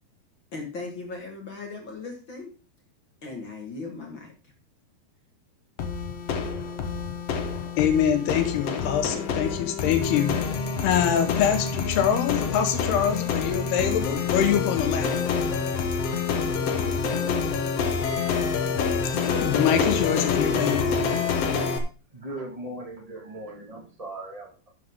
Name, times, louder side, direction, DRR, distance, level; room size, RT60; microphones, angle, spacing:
voice 1, 0.5-2.5 3.2-4.3, left 3 dB, 45° left, 2 dB, 1.8 m, -37 dB
sound 1, 5.8-21.8, left 5 dB, 70° left, 1.5 m, -27 dB
voice 2, 7.8-10.5 10.8-15.2 19.2-21.0, left 9 dB, 85° left, 8 dB, 3.3 m, -25 dB
voice 3, 22.1-24.7, right 1 dB, 55° right, 0 dB, 0.4 m, -38 dB
12.0 x 7.7 x 3.7 m, 0.33 s
omnidirectional pair, 4.5 m